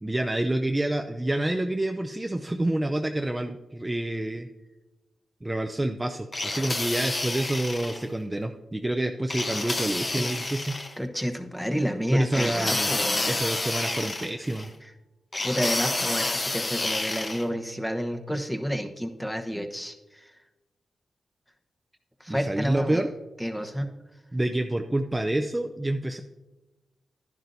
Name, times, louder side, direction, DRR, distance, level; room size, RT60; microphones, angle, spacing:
voice 1, 0.0-4.5 5.4-10.8 12.1-14.7 22.3-23.1 24.3-26.2, right 1 dB, 20° right, 5 dB, 0.5 m, -28 dB
sound 1, 6.3-8.0 9.3-10.9 12.3-14.7 15.3-17.5, left 2 dB, 35° left, 1.0 m, -29 dB
voice 2, 11.0-13.4 14.8-14.9 15.4-20.3 22.2-23.0 23.4-23.9, equal, 5° left, 5 dB, 1.0 m, -30 dB
10.5 x 10.5 x 2.7 m, 1.1 s
cardioid pair, 50°, 0 cm